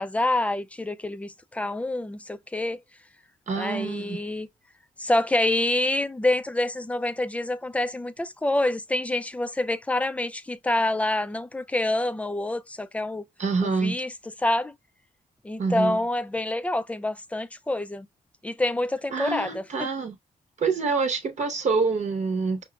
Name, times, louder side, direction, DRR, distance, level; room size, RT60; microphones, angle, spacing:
voice 1, 0.0-2.8 3.6-4.5 5.0-13.2 13.6-14.1 14.4-14.7 15.4-18.1 18.4-19.9, left 1 dB, 10° left, 0.3 m, -27 dB
voice 2, 3.5-4.2 13.4-14.0 15.6-16.0 19.1-20.2 20.6-22.6, right 4 dB, 55° right, 0.9 m, -26 dB
5.6 x 2.1 x 2.2 m
cardioid pair, 95°, 14 cm